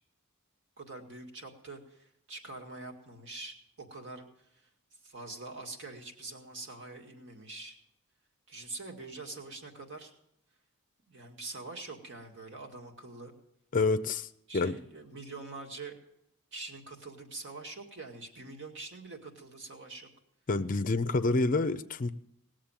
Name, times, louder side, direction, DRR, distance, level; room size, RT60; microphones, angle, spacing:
voice 1, 0.8-4.7 5.0-7.8 8.5-10.1 11.1-13.3 14.5-16.0 16.5-20.1, right 3 dB, 60° right, 3 dB, 2.1 m, -44 dB
voice 2, 13.7-14.3 14.5-14.7 20.5-22.1, left 3 dB, 40° left, 11 dB, 0.5 m, -27 dB
19.0 x 7.5 x 8.9 m, 0.79 s
head